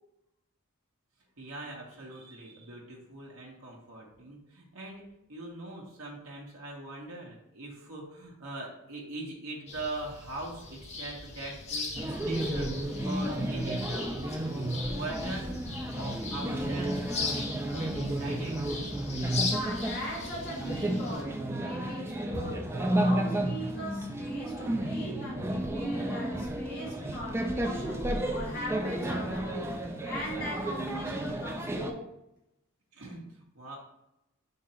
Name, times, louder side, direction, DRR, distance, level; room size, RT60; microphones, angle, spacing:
voice 1, 1.4-5.0 5.3-14.1 14.4-15.6 15.9-18.6 32.9-33.8, right 2 dB, 75° right, 1.0 m, -42 dB
sound 1, 9.7-21.2, left 4 dB, 30° left, 0.7 m, -39 dB
sound 2, 12.0-31.9, right 1 dB, 10° right, 0.4 m, -32 dB
voice 2, 19.5-29.7 30.0-32.2, equal, 50° left, 1.7 m, -40 dB
3.8 x 2.9 x 4.2 m
head